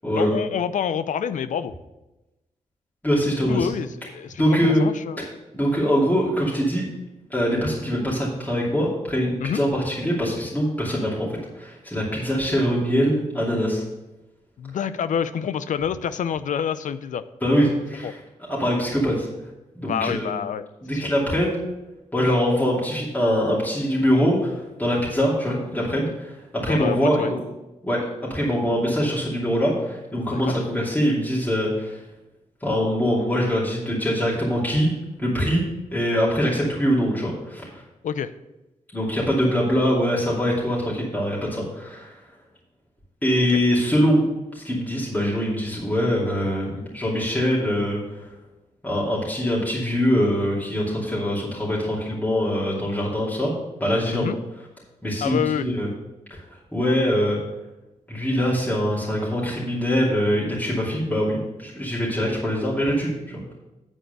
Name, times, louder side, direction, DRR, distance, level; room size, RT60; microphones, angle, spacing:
voice 1, 0.2-1.7 3.3-5.3 9.4-9.6 12.5-12.6 14.6-17.2 18.0-18.1 19.8-20.7 20.9-21.1 26.7-27.3 30.3-30.6 38.0-38.3 43.5-43.6 54.1-54.4 55.2-55.7, left 8 dB, 75° left, 14 dB, 0.5 m, -27 dB
voice 2, 3.0-3.7 4.4-4.8 5.5-6.9 7.3-11.3 11.5-13.8 17.4-18.2 18.5-19.3 19.8-20.3 20.8-21.6 22.1-24.5 24.8-27.4 27.8-28.0 28.3-32.0 32.6-34.9 35.2-35.6 35.9-37.7 38.9-42.1 43.2-44.2 44.5-48.3 48.8-53.5 53.8-54.3 55.0-55.9 56.3-56.4 56.7-57.4 58.1-63.5, equal, 10° left, -6 dB, 2.6 m, -23 dB
9.0 x 4.5 x 6.7 m, 1.0 s
cardioid pair, 65°, 13 cm